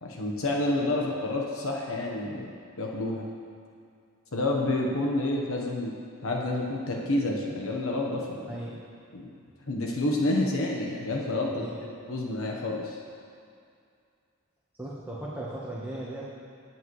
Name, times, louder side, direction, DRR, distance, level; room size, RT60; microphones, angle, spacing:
voice 1, 0.0-3.3 4.3-5.9 6.2-8.5 9.1-9.3 9.7-11.7 12.1-13.0, left 2 dB, 70° left, -1 dB, 1.2 m, -29 dB
voice 2, 8.5-8.8 11.4-11.9 14.8-16.3, right 1 dB, 10° right, -7 dB, 1.2 m, -37 dB
21.0 x 7.8 x 3.2 m, 2.3 s
head